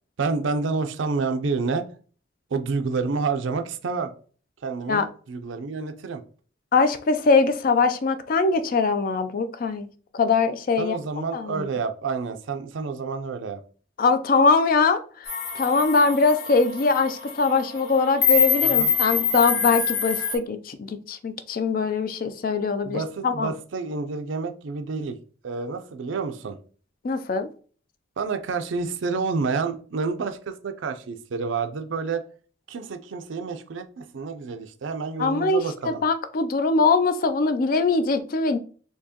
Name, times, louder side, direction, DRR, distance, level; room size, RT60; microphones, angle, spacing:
voice 1, 0.2-1.8 2.5-4.1 4.6-6.2 10.8-13.6 18.6-18.9 22.8-25.2 25.4-26.6 28.2-32.2 32.7-36.0, right 4 dB, 70° right, 8 dB, 0.5 m, -29 dB
voice 2, 6.7-9.9 10.1-11.0 11.3-11.7 14.0-15.3 15.5-23.5 27.0-27.5 35.2-38.6, left 4 dB, 45° left, 10 dB, 0.4 m, -22 dB
sound 1, 15.3-20.4, left 7 dB, 85° left, 1.1 m, -24 dB
4.4 x 2.8 x 2.8 m, 0.42 s
head